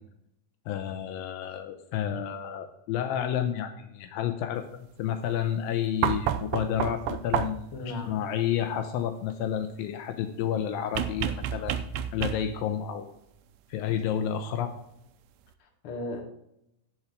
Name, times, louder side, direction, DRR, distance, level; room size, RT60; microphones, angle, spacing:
voice 1, 0.7-13.1 13.7-14.7, left 9 dB, 80° left, 8 dB, 2.4 m, -30 dB
sound 1, 6.0-7.8 10.9-12.7 14.2-14.3, right 10 dB, 75° right, 1.9 m, -30 dB
voice 2, 7.7-8.1 15.6-16.2, left 2 dB, 45° left, 2 dB, 2.3 m, -36 dB
12.5 x 4.5 x 8.2 m, 0.79 s
omnidirectional pair, 4.2 m